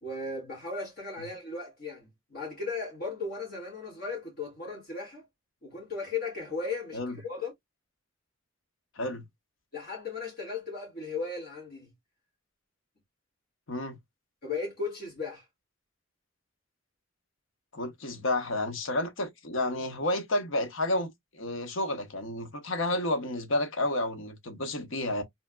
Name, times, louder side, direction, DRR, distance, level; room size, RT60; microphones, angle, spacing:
voice 1, 0.0-5.2 5.6-7.5 9.7-11.9 14.4-15.4, left 4 dB, 50° left, 2.0 m, -36 dB
voice 2, 17.7-25.2, left 1 dB, 80° left, 1.0 m, -31 dB
4.3 x 3.3 x 2.2 m
head